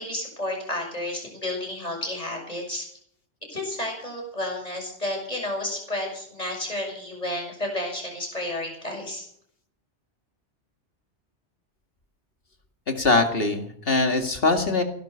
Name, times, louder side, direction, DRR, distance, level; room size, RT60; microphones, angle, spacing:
voice 1, 0.0-2.9 3.5-9.3, left 1 dB, 35° left, 0 dB, 6.8 m, -31 dB
voice 2, 12.9-14.8, left 3 dB, 55° left, 5 dB, 2.3 m, -22 dB
17.5 x 11.0 x 6.8 m, 0.64 s
omnidirectional pair, 1.2 m